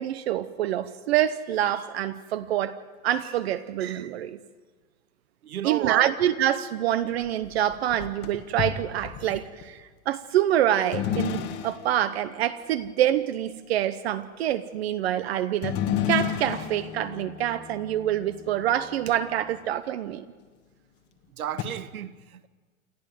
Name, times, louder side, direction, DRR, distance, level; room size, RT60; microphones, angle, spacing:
voice 1, 0.0-2.8 3.0-4.4 5.6-15.8 16.1-20.2, right 11 dB, 45° right, 0.9 m, -26 dB
voice 2, 5.4-6.1 21.4-22.5, right 11 dB, 90° right, 1.1 m, -32 dB
sound 1, 7.0-9.7 10.9-12.2 15.6-19.6 20.1-20.2 21.6-21.7, left 10 dB, 25° left, 1.4 m, -32 dB
28.5 x 12.0 x 9.2 m
hypercardioid pair, 155°, 42 cm